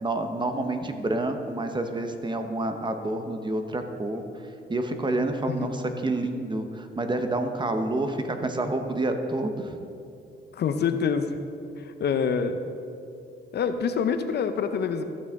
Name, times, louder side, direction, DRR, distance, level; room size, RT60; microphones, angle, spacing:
voice 1, 0.0-4.2 4.7-9.8, right 2 dB, 25° right, 6 dB, 0.8 m, -28 dB
voice 2, 10.5-11.4 11.8-12.6 13.5-15.0, left 6 dB, 55° left, 9 dB, 0.6 m, -26 dB
14.0 x 6.2 x 3.6 m, 2.6 s
cardioid pair, 90°, 20 cm